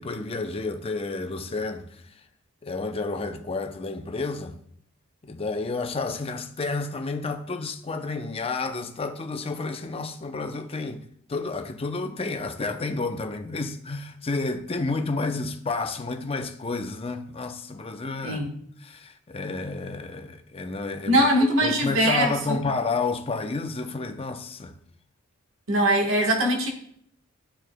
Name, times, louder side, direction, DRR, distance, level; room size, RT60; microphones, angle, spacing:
voice 1, 0.0-1.8 2.6-4.5 5.2-18.4 18.8-24.7, left 3 dB, 30° left, 0.6 m, -30 dB
voice 2, 18.2-18.5 21.1-22.6 25.7-26.7, right 1 dB, 75° right, 1.4 m, -22 dB
12.5 x 4.7 x 2.2 m
head